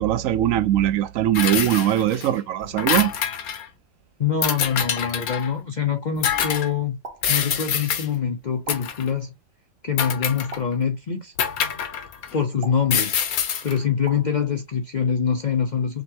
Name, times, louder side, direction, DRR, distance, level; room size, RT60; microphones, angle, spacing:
voice 1, 0.0-3.1, right 12 dB, 75° right, 0.9 m, -21 dB
sound 1, 1.3-2.3 2.6-3.6 4.4-5.5 6.2-6.7 7.2-8.1 8.7-9.1 10.0-10.7 11.4-12.4 12.9-13.8, left 8 dB, 90° left, 1.3 m, -25 dB
voice 2, 4.2-7.0 7.3-9.3 9.8-11.3 12.3-13.2 13.6-16.0, left 7 dB, 55° left, 0.5 m, -24 dB
sound 2, 5.0-5.3 7.0-7.4 8.7-9.1 10.5-11.0 12.6-13.0 14.1-14.4, right 3 dB, 45° right, 1.1 m, -40 dB
5.1 x 3.2 x 2.8 m
omnidirectional pair, 1.5 m